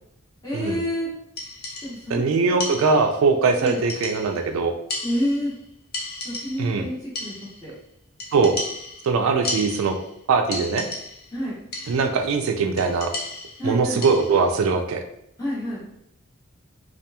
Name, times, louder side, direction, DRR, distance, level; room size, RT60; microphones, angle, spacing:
voice 1, 0.4-1.1 1.8-2.8 3.6-3.8 5.0-5.5 6.2-7.3 7.6-7.7 11.3-11.5 13.6-14.0 15.4-15.8, equal, 15° left, -11 dB, 0.8 m, -28 dB
sound 1, 1.4-2.1 2.6-3.3 3.7-4.5 4.9-5.6 5.9-6.8 7.1-7.7 8.2-10.2 10.5-11.4 11.7-12.2 12.8-14.5, left 2 dB, 50° left, 0.5 m, -34 dB
voice 2, 2.1-4.7 6.6-6.9 8.3-8.6 9.0-10.0 10.3-10.9 11.9-13.1 13.6-15.0, right 4 dB, 80° right, 5 dB, 0.3 m, -21 dB
2.8 x 2.3 x 2.2 m, 0.75 s
head